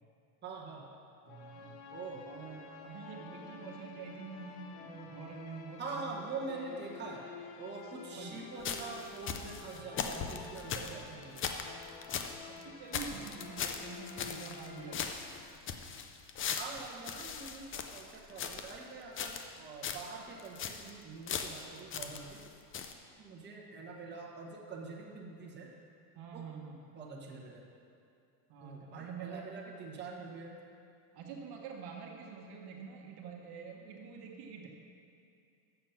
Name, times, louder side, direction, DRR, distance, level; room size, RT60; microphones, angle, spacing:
voice 1, 0.4-0.8 1.9-2.2 5.8-7.3 7.6-11.5 13.1-13.2 16.6-22.5 23.2-25.7 26.3-26.4 26.9-27.7 28.6-30.5, right 4 dB, 20° right, -2 dB, 1.1 m, -44 dB
voice 2, 1.2-1.8 2.2-6.1 7.8-8.4 9.4-9.9 12.5-15.1 22.1-22.4 26.1-26.8 28.5-29.5 31.1-34.7, right 6 dB, 50° right, 0 dB, 1.3 m, -47 dB
sound 1, 1.3-15.1, left 5 dB, 85° left, 1.0 m, -50 dB
sound 2, 8.6-12.4 12.6-12.7 12.9-14.7 14.9-18.8 19.2-19.6 19.8-20.1 20.4-20.9 21.3-22.5 22.7-22.9, left 6 dB, 25° left, 0.5 m, -39 dB
7.2 x 6.9 x 5.8 m, 2.5 s
supercardioid pair, 115°, 49 cm